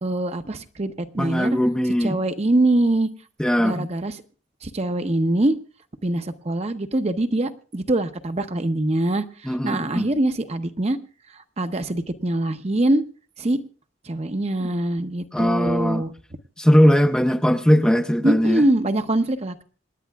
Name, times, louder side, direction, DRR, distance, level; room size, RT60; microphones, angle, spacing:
voice 1, 0.0-1.6 2.0-3.1 3.6-4.2 4.6-5.6 6.0-11.0 11.3-13.0 13.4-13.6 14.0-16.1 18.2-19.6, right 1 dB, 35° right, 0.7 m, -23 dB
voice 2, 1.2-2.2 3.4-3.9 9.5-10.1 14.6-14.7 15.3-16.0 16.6-18.6, equal, 5° left, 0.5 m, -19 dB
27.0 x 10.5 x 2.3 m
head